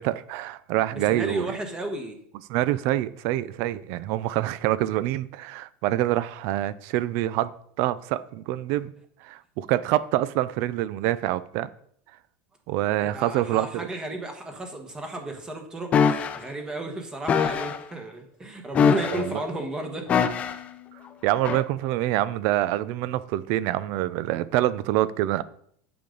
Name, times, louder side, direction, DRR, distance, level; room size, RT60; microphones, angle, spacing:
voice 1, 0.0-1.4 2.5-7.5 7.8-8.9 9.2-11.7 12.7-13.9 19.1-19.4 21.2-25.4, right 14 dB, 50° right, 0.4 m, -26 dB
voice 2, 0.9-2.2 13.0-20.1, right 2 dB, 15° right, 1.2 m, -34 dB
sound 1, 15.9-16.4 17.3-17.8 18.7-19.4 20.1-20.7 21.4-21.6, left 6 dB, 25° left, 0.5 m, -22 dB
8.6 x 6.9 x 3.9 m
supercardioid pair, 160°, 5 cm